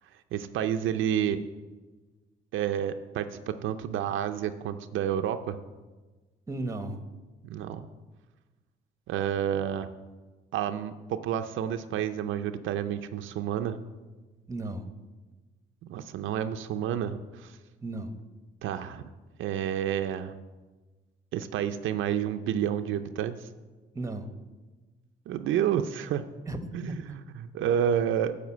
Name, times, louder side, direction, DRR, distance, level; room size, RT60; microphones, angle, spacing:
voice 1, 0.3-1.4 2.5-5.6 7.4-7.9 9.1-9.9 10.5-13.8 15.8-17.6 18.6-19.1 19.4-20.3 21.3-23.5 25.3-26.2 26.7-28.4, right 9 dB, 80° right, 8 dB, 0.5 m, -30 dB
voice 2, 6.5-7.0 14.5-14.9 17.8-18.2 23.9-24.3 26.5-27.0, right 2 dB, 15° right, 8 dB, 1.0 m, -35 dB
9.4 x 5.0 x 7.2 m, 1.2 s
cardioid pair, 90°, 20 cm